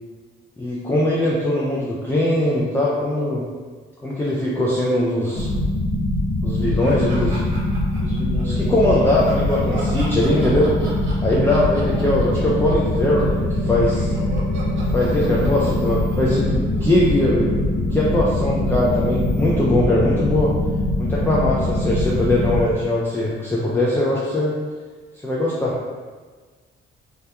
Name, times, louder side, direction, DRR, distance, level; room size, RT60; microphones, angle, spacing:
voice 1, 0.6-3.4 4.0-5.5 6.4-7.5 8.4-10.7 11.2-14.2 14.9-17.6 17.9-20.5 21.0-24.6 25.2-25.7, left 1 dB, 10° left, -6 dB, 0.3 m, -21 dB
sound 1, 5.3-22.6, left 1 dB, 55° left, 0.8 m, -23 dB
voice 2, 6.8-7.2 7.9-8.7 15.3-15.6, left 2 dB, 45° right, -9 dB, 1.1 m, -37 dB
sound 2, 6.8-8.4 9.0-17.3, right 1 dB, 80° right, 0.7 m, -38 dB
sound 3, 11.9-19.9, equal, 10° right, 0.7 m, -35 dB
2.3 x 2.1 x 2.8 m, 1.4 s
cardioid pair, 90°, 20 cm